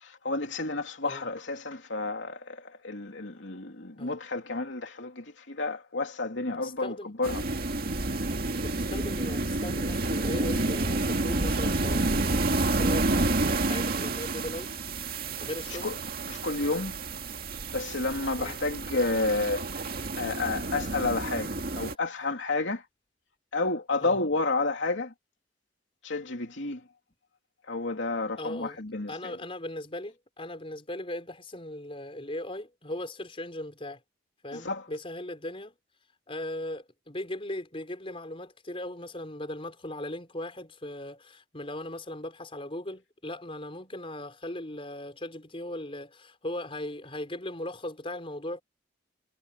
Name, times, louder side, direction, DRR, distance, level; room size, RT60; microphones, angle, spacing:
voice 1, 0.0-7.4 15.8-16.0 16.3-16.9 17.7-22.8 23.5-25.1 26.0-26.8 27.7-29.4 34.5-34.8, left 3 dB, 75° left, 2.9 m, -31 dB
voice 2, 6.6-7.1 8.6-14.7 15.4-15.9 18.4-18.6 24.0-24.2 28.4-28.8 29.1-34.0 34.4-35.7 36.3-48.6, left 1 dB, 30° left, 4.8 m, -38 dB
sound 1, 7.2-21.9, right 2 dB, 55° right, 2.0 m, -29 dB
head